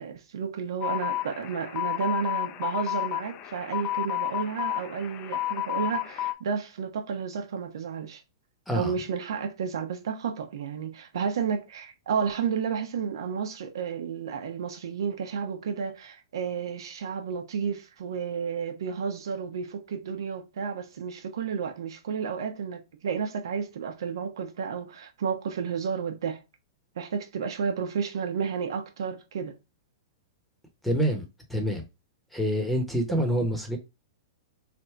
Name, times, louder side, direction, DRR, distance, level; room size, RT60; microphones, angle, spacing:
voice 1, 0.0-8.2 8.7-26.4 27.0-29.5, right 6 dB, 75° right, 0.9 m, -32 dB
sound 1, 0.8-6.3, left 14 dB, 40° left, 0.5 m, -31 dB
voice 2, 30.8-31.2 31.5-31.9 32.3-33.8, equal, ahead, 0.9 m, -26 dB
3.4 x 2.6 x 4.4 m
hypercardioid pair, 125°, 2 cm